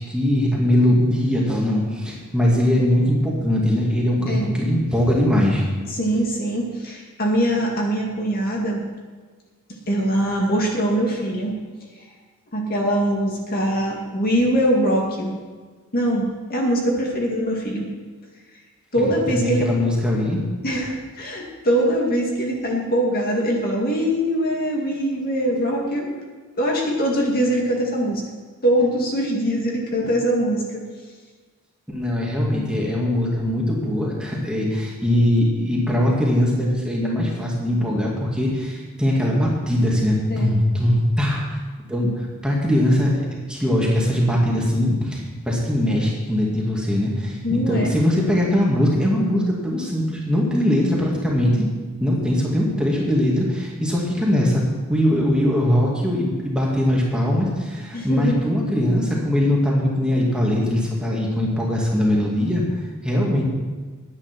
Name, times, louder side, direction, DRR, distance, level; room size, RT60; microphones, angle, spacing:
voice 1, 0.0-5.6 19.0-20.4 31.9-41.6 41.9-51.7 52.0-54.6 54.9-62.6 63.0-63.4, left 1 dB, 5° right, -4 dB, 2.2 m, -21 dB
voice 2, 5.9-8.8 9.9-11.5 12.5-15.3 15.9-17.9 18.9-19.7 20.6-26.2 26.6-28.2 28.6-30.8 40.3-40.5 47.4-47.9 57.9-58.3, equal, 45° left, -1 dB, 2.1 m, -22 dB
10.5 x 9.8 x 6.0 m, 1.4 s
head